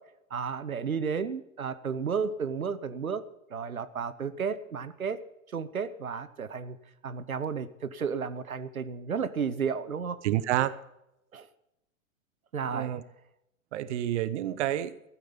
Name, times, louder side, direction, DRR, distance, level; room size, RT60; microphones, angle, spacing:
voice 1, 0.3-3.2 3.5-5.2 5.5-6.8 7.0-10.2 11.3-11.5 12.5-12.9, right 6 dB, 90° right, 13 dB, 0.9 m, -32 dB
voice 2, 10.2-10.8 12.7-13.0 13.7-14.9, right 12 dB, 55° right, 15 dB, 0.9 m, -29 dB
15.0 x 9.2 x 7.2 m, 0.85 s
figure-of-eight pair, 105°, 41 cm